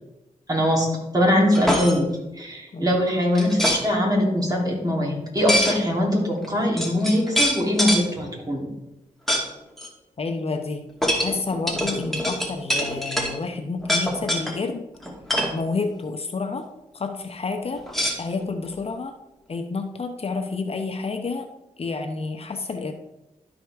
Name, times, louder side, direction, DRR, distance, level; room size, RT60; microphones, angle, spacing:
voice 1, 0.5-0.9 1.1-2.1 2.4-8.7, left 1 dB, 25° right, -1 dB, 3.0 m, -22 dB
sound 1, 1.5-2.0 3.3-3.8 5.5-5.8 6.4-6.5 6.8-8.0 9.3-9.5 9.8-9.9 11.0-13.3 13.8-14.5 15.0-15.5 17.9-18.7, equal, ahead, 2.0 m, -24 dB
voice 2, 10.2-10.8 11.2-14.9 15.5-16.7 16.9-17.8 18.2-19.1 19.5-21.5 21.8-22.9, left 4 dB, 45° left, 5 dB, 0.8 m, -29 dB
12.5 x 5.0 x 3.5 m, 0.93 s
cardioid pair, 60°, 14 cm